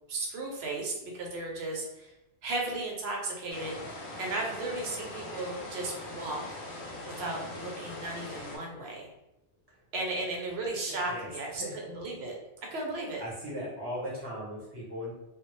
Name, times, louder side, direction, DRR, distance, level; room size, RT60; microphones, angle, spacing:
voice 1, 0.1-2.1 2.4-6.6 7.2-9.1 9.9-12.4 12.7-13.2, right 2 dB, 65° right, -1 dB, 0.9 m, -35 dB
sound 1, 3.5-8.6, left 2 dB, 60° left, 0.7 m, -41 dB
voice 2, 13.2-15.1, equal, 25° right, -7 dB, 0.7 m, -37 dB
2.1 x 2.0 x 3.0 m, 0.94 s
omnidirectional pair, 1.2 m